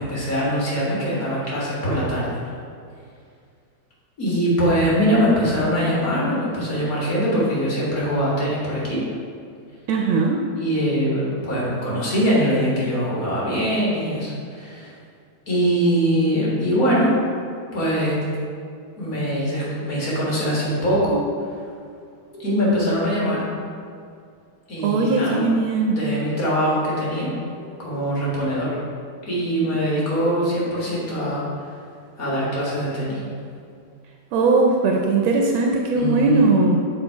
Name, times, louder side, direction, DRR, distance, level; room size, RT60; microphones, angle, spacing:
voice 1, 0.0-2.4 4.2-9.0 10.6-14.9 15.5-17.1 17.7-18.2 19.0-21.2 22.4-23.4 24.7-25.5 25.9-27.3 27.8-28.7 29.3-31.7 32.2-33.2 35.9-36.6, equal, 45° left, -6 dB, 2.0 m, -22 dB
voice 2, 9.9-10.4 24.8-26.0 34.3-36.8, right 3 dB, 85° right, 1 dB, 1.4 m, -19 dB
7.0 x 3.8 x 4.5 m, 2.3 s
omnidirectional pair, 2.2 m